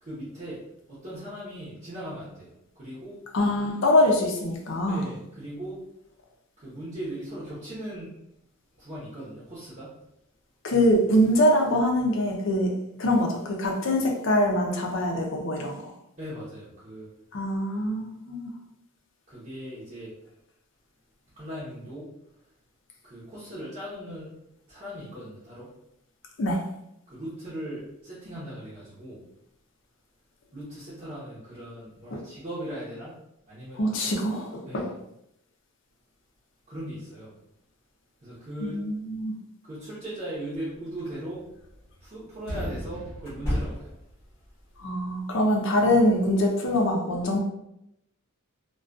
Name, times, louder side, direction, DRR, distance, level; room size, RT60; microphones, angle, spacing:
voice 1, 0.0-0.6 0.9-3.2 4.9-5.8 6.6-8.1 8.8-9.9 16.2-17.1 19.3-20.1 21.4-22.1 23.0-24.3 24.7-25.7 27.1-29.2 30.5-33.2 33.5-34.1 34.7-34.8 36.7-37.3 38.2-38.8 39.6-41.4 42.0-44.0, right 1 dB, 30° right, -10 dB, 0.7 m, -38 dB
voice 2, 3.3-5.0 10.6-12.7 13.0-15.9 17.3-18.5 26.4-26.6 32.1-32.2 33.8-34.9 38.6-39.3 44.8-47.4, left 1 dB, 55° left, 1 dB, 0.5 m, -24 dB
sound 1, 41.0-41.2 43.2-44.2, equal, 10° left, 0.8 m, -31 dB
sound 2, 41.3-42.1 42.4-44.5, right 1 dB, 60° right, 1.0 m, -38 dB
2.3 x 2.2 x 2.5 m, 0.81 s
head